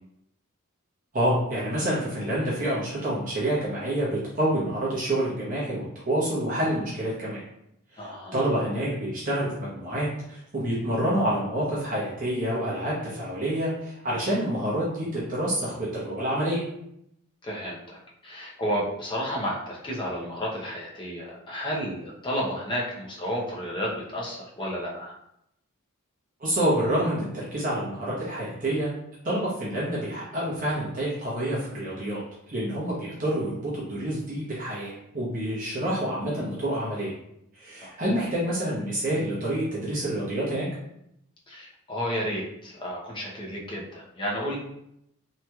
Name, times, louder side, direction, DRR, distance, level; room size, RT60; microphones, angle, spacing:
voice 1, 1.1-7.4 7.9-16.6 26.4-28.9 29.2-32.2 32.5-37.1 37.5-40.7, right 1 dB, 40° right, -7 dB, 0.8 m, -28 dB
voice 2, 8.0-8.4 17.4-25.1 37.8-38.2 41.5-44.6, equal, 20° left, -4 dB, 0.7 m, -32 dB
3.0 x 2.8 x 2.3 m, 0.77 s
head